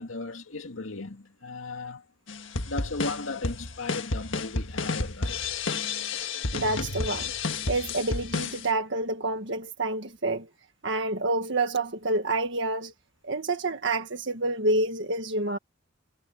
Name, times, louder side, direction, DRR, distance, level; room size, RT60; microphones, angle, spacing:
voice 1, 0.0-2.0 2.6-5.4, left 3 dB, 85° left, 2.2 m, -36 dB
sound 1, 2.3-8.7, left 3 dB, 70° left, 1.7 m, -31 dB
voice 2, 6.5-7.3 7.7-10.5 10.8-12.9 13.2-15.6, right 2 dB, 65° right, 1.7 m, -28 dB
head